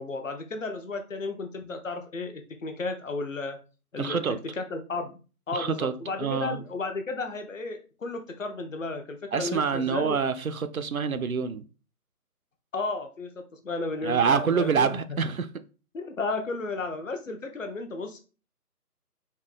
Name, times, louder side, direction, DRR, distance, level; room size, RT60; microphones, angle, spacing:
voice 1, 0.0-3.6 3.9-4.2 4.6-5.1 5.5-10.2 12.7-15.0 15.9-18.2, left 3 dB, 55° left, 0.9 m, -33 dB
voice 2, 4.0-4.4 5.5-6.6 9.3-11.7 14.0-15.6, right 6 dB, 65° right, 0.5 m, -26 dB
4.4 x 2.8 x 3.8 m
figure-of-eight pair, 150°, 47 cm